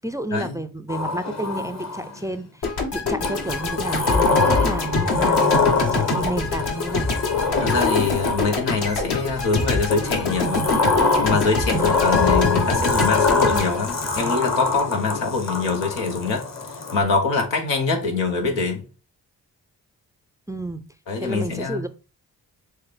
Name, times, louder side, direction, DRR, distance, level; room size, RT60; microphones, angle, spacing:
voice 1, 0.0-7.1 11.7-12.0 20.5-20.8 21.2-21.9, right 1 dB, 10° right, 0.4 m, -31 dB
Sliding door, 0.9-2.3 3.2-8.8 9.9-17.0, left 4 dB, 40° left, 1.0 m, -24 dB
sound 1, 2.6-14.8, left 3 dB, 65° left, 1.3 m, -25 dB
voice 2, 7.6-10.6 11.2-16.4 16.9-18.8 21.1-21.8, left 4 dB, 90° left, 0.9 m, -24 dB
6.3 x 2.1 x 3.3 m
supercardioid pair, 45°, 43 cm